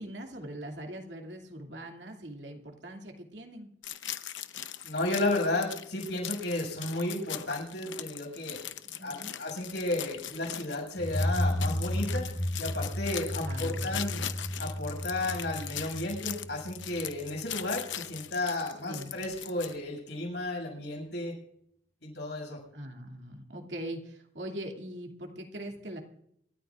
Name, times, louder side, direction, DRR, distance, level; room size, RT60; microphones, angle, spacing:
voice 1, 0.0-3.7 8.8-9.4 13.4-13.9 18.9-19.1 22.7-26.0, right 1 dB, 70° right, 2 dB, 2.6 m, -41 dB
sound 1, 3.8-19.8, left 11 dB, 85° left, 0.9 m, -40 dB
voice 2, 4.8-8.6 9.0-12.3 12.6-14.2 14.6-21.3 22.0-22.6, left 2 dB, 65° left, 0 dB, 7.2 m, -33 dB
sound 2, 11.0-17.5, equal, 15° left, 0.6 m, -33 dB
27.0 x 13.5 x 2.5 m, 0.71 s
head